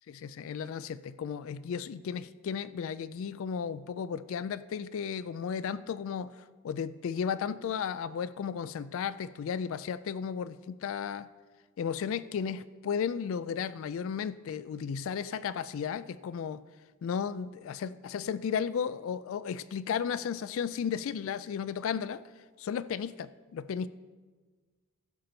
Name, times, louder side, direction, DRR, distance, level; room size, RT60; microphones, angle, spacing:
voice 1, 0.1-6.3 6.6-11.3 11.8-16.6 17.0-22.2 22.6-23.9, left 7 dB, 65° left, 16 dB, 0.3 m, -34 dB
16.0 x 6.9 x 3.9 m, 1.4 s
head